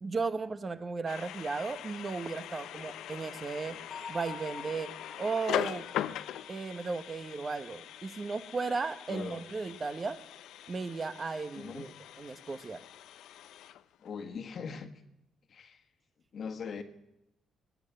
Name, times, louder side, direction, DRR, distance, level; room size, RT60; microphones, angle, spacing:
voice 1, 0.0-3.8 4.1-4.9 5.2-5.9 6.5-10.2 10.7-11.9 12.2-12.8, right 4 dB, 35° right, 11 dB, 1.1 m, -35 dB
sound 1, 1.1-14.2, left 11 dB, 80° left, 0.5 m, -41 dB
Bell, 3.9-7.6, left 5 dB, 40° left, 1.6 m, -48 dB
voice 2, 9.1-9.4 11.6-11.9 14.0-14.9 15.5-15.8 16.3-16.8, left 6 dB, 55° left, 7 dB, 1.5 m, -40 dB
19.5 x 7.6 x 8.0 m, 0.87 s
cardioid pair, 90°, 0 cm